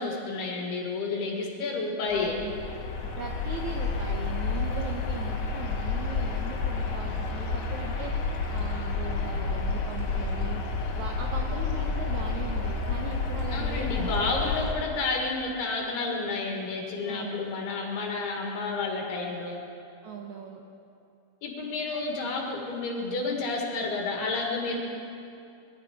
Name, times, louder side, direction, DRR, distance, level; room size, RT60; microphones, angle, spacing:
voice 1, 0.0-2.4 13.5-19.6 21.4-24.8, left 3 dB, 90° left, 0 dB, 4.0 m, -30 dB
sound 1, 2.1-14.7, left 4 dB, 55° left, 1.9 m, -30 dB
voice 2, 2.1-2.5 3.2-8.1 8.5-10.6 10.9-14.2 17.0-17.5 20.0-20.6 21.9-22.1, right 6 dB, 80° right, 1 dB, 1.7 m, -39 dB
22.0 x 11.5 x 5.2 m, 2.6 s
omnidirectional pair, 4.4 m